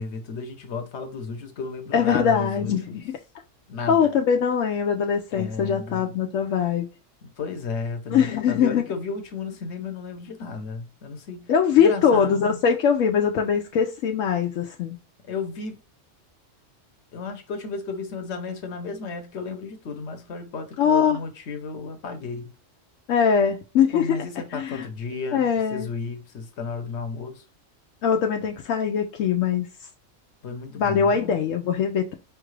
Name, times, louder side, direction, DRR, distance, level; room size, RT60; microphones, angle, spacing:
voice 1, 0.0-3.0 3.7-4.2 5.3-6.2 7.2-11.5 11.8-12.6 15.2-15.8 17.1-22.5 23.9-27.4 30.4-31.4, left 4 dB, 60° left, 1.1 m, -33 dB
voice 2, 1.9-3.2 3.9-6.9 8.1-8.9 11.5-15.0 20.8-21.2 23.1-24.1 24.5-24.9 25.3-25.9 28.0-29.7 30.8-32.1, left 7 dB, 85° left, 1.0 m, -22 dB
5.1 x 2.4 x 3.2 m
omnidirectional pair, 1.3 m